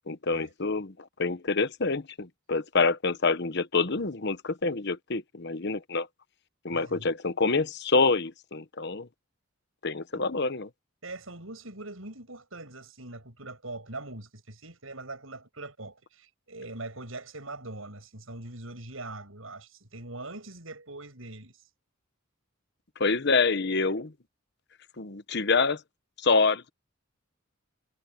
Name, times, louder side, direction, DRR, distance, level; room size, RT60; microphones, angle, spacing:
voice 1, 0.1-6.1 6.6-9.1 9.8-10.7 23.0-24.1 25.0-25.8 26.2-26.7, left 4 dB, 55° left, 1.1 m, -27 dB
voice 2, 6.7-7.1 10.1-10.2 11.0-21.6, right 2 dB, 75° right, 7.5 m, -42 dB
head